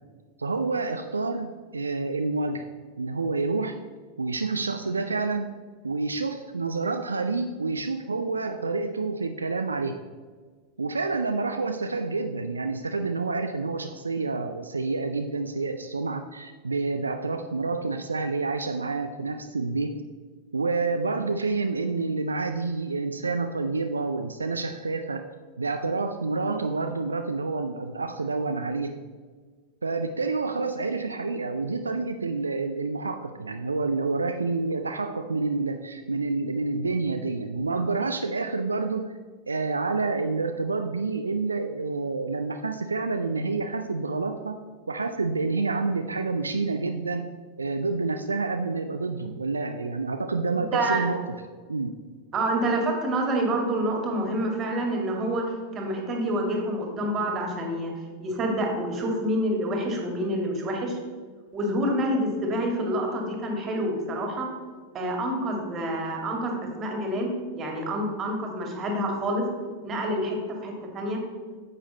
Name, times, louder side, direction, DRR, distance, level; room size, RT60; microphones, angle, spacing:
voice 1, 0.4-2.7 3.0-3.8 4.2-5.5 5.8-10.0 10.8-20.0 20.5-25.3 25.6-29.0 29.8-39.2 39.5-44.6 44.9-47.2 47.6-51.2 51.7-52.0, right 3 dB, 75° right, 7 dB, 0.4 m, -28 dB
voice 2, 50.7-51.0 52.3-57.9 58.2-61.0 61.5-64.5 64.9-69.5 69.8-71.2, right 1 dB, 25° right, 2 dB, 2.1 m, -27 dB
9.5 x 7.3 x 4.0 m, 1.5 s
figure-of-eight pair, 90°, 0 cm